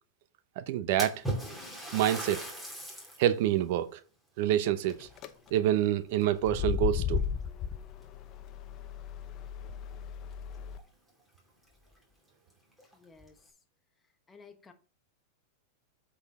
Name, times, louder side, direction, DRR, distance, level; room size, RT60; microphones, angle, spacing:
voice 1, 0.6-1.2 1.9-2.5 3.2-4.0 4.4-5.1 5.5-7.2, right 11 dB, 60° right, 0.6 m, -27 dB
Splash splatter, 1.0-3.3 3.8-3.9 4.8-5.8 6.2-6.7 7.5-7.6 8.0-8.1 10.3-10.4 10.7-10.8 11.4-11.5 11.9-12.0 12.7-13.3, right 1 dB, 5° right, 2.4 m, -38 dB
sound 1, 4.9-5.3 6.4-10.8, left 8 dB, 40° left, 0.8 m, -35 dB
voice 2, 12.9-13.4 14.3-14.7, left 5 dB, 15° left, 1.1 m, -54 dB
7.9 x 4.2 x 4.8 m
hypercardioid pair, 120°, 0 cm